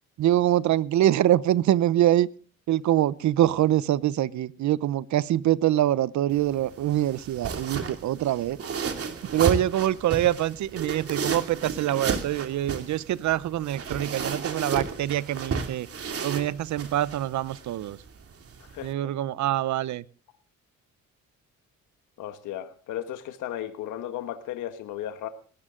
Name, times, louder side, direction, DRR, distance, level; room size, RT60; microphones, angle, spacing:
voice 1, 0.2-2.3 2.7-8.6 9.3-15.9 16.2-18.0 18.8-20.0, right 13 dB, 70° right, 0.8 m, -24 dB
sound 1, 6.3-18.9, right 5 dB, 50° right, 2.7 m, -33 dB
voice 2, 18.7-19.1 22.2-25.3, left 11 dB, 90° left, 1.4 m, -35 dB
19.5 x 13.5 x 3.8 m
cardioid pair, 90°, 30 cm